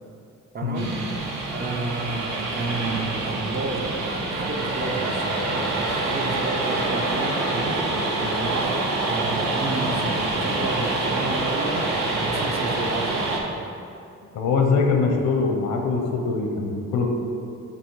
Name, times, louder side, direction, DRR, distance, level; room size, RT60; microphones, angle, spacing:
voice 1, 0.5-1.1 1.5-13.3, right 3 dB, 30° right, 2 dB, 0.7 m, -31 dB
sound 1, 0.7-13.4, right 2 dB, 65° right, 1.1 m, -26 dB
voice 2, 14.3-17.1, left 4 dB, 75° left, 2 dB, 0.9 m, -22 dB
7.0 x 3.0 x 4.7 m, 2.5 s
cardioid pair, 90°, 30 cm